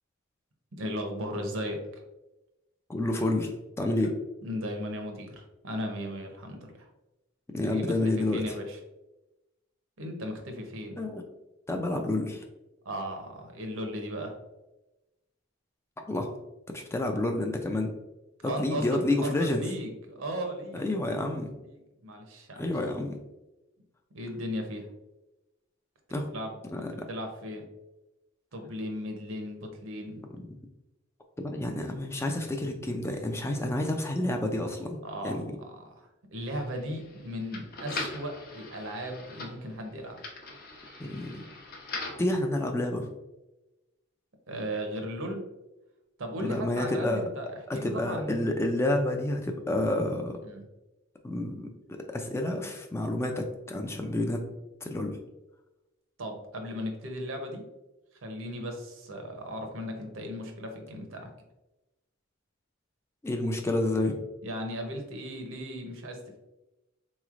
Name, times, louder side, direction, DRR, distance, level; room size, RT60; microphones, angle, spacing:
voice 1, 0.7-1.8 3.9-4.1 4.4-6.9 7.7-8.8 10.0-11.0 12.8-14.3 18.4-21.3 21.6-22.7 24.1-24.9 26.3-26.6 27.1-27.7 28.5-30.3 35.0-40.2 44.5-45.4 46.2-48.6 50.4-50.6 56.2-57.6 58.2-61.3 64.4-66.4, equal, 70° right, 4 dB, 0.8 m, -36 dB
voice 2, 2.9-3.5 3.8-4.1 7.5-8.4 11.0-11.2 11.7-12.4 16.1-16.3 16.7-17.9 18.4-19.6 20.7-21.5 22.6-23.2 26.1-26.3 26.7-26.8 30.3-30.5 31.4-35.0 35.2-35.5 41.0-41.4 42.2-43.1 46.4-47.2 47.7-50.4 51.2-54.5 54.8-55.2 63.2-64.2, left 1 dB, 15° left, 4 dB, 0.3 m, -29 dB
sound 1, 36.4-42.3, left 2 dB, 45° left, 0.6 m, -41 dB
3.9 x 3.1 x 2.4 m, 1.0 s
head